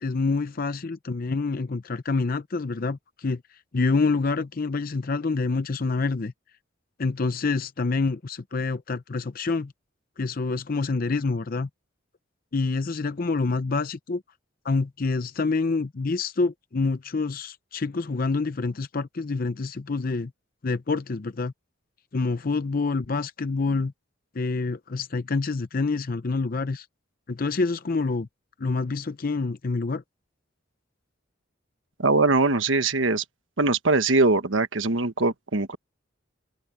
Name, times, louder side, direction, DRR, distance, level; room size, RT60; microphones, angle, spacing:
voice 1, 0.0-3.4 3.7-6.3 7.0-9.7 10.2-11.7 12.5-14.2 14.6-20.3 20.6-21.5 22.1-23.9 24.3-26.9 27.3-28.3 28.6-30.0, left 3 dB, 45° left, 0.6 m, -27 dB
voice 2, 32.0-33.2 33.6-35.8, right 3 dB, 70° right, 1.3 m, -22 dB
open air
head